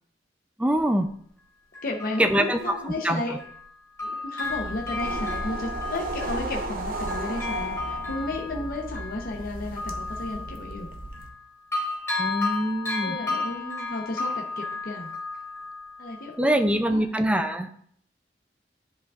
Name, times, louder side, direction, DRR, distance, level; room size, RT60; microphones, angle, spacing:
voice 1, 0.6-1.1 2.2-2.8 3.0-3.4 12.2-13.2 16.4-17.7, right 1 dB, 5° right, 6 dB, 0.4 m, -24 dB
Bell, 0.8-0.9 1.7-3.7 4.0-11.4 11.7-16.3 16.8-16.9, left 3 dB, 15° left, 3.1 m, -34 dB
voice 2, 1.8-3.3 4.0-10.9 13.0-15.2 16.0-16.6 16.9-17.1, left 2 dB, 55° left, 0 dB, 0.8 m, -33 dB
sound 1, 4.4-11.3, right 2 dB, 55° right, 0.8 m, -35 dB
10.5 x 5.2 x 2.5 m, 0.65 s
head